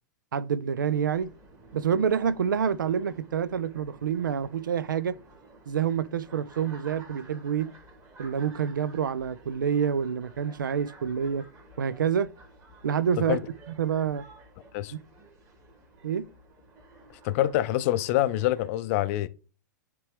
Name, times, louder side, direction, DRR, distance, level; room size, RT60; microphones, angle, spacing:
voice 1, 0.3-1.3 1.7-5.1 5.7-7.7 8.2-11.4 11.8-12.3 12.8-13.4 13.8-14.2 16.0-16.2, right 7 dB, 75° right, 0.4 m, -27 dB
sound 1, 0.9-18.7, right 2 dB, 25° right, 2.2 m, -53 dB
voice 2, 17.2-19.3, left 14 dB, 45° left, 0.5 m, -25 dB
9.3 x 3.4 x 3.4 m
figure-of-eight pair, 105°, 11 cm